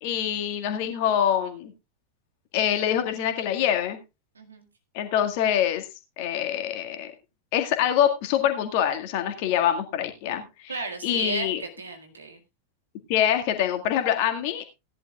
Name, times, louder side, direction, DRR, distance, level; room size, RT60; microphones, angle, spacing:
voice 1, 0.0-1.7 2.5-4.0 4.9-5.9 6.2-7.1 7.5-11.6 13.1-14.6, left 10 dB, 45° left, 6 dB, 1.8 m, -25 dB
voice 2, 4.4-4.7 10.7-12.4, right 3 dB, 75° right, 5 dB, 1.9 m, -34 dB
17.0 x 11.0 x 2.3 m, 0.23 s
figure-of-eight pair, 90°, 0 cm